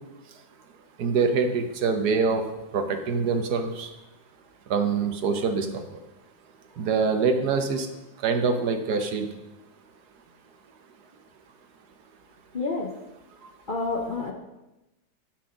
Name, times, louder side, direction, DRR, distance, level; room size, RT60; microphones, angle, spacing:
voice 1, 1.0-2.4 2.7-3.9 4.7-5.8 6.8-7.9 8.2-9.3 13.4-13.5, right 5 dB, 65° right, 6 dB, 1.4 m, -24 dB
voice 2, 12.5-12.9 13.7-14.3, left 3 dB, 45° left, -1 dB, 0.7 m, -28 dB
10.5 x 6.0 x 5.1 m, 0.99 s
omnidirectional pair, 1.9 m